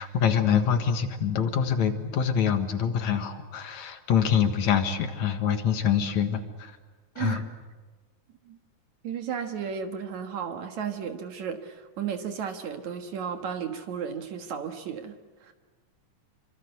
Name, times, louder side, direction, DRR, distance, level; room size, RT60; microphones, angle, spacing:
voice 1, 0.0-6.7 7.2-7.4, left 8 dB, 65° left, 8 dB, 2.7 m, -25 dB
voice 2, 9.0-15.5, right 7 dB, 65° right, 6 dB, 2.8 m, -34 dB
28.0 x 25.0 x 8.1 m, 1.3 s
omnidirectional pair, 3.7 m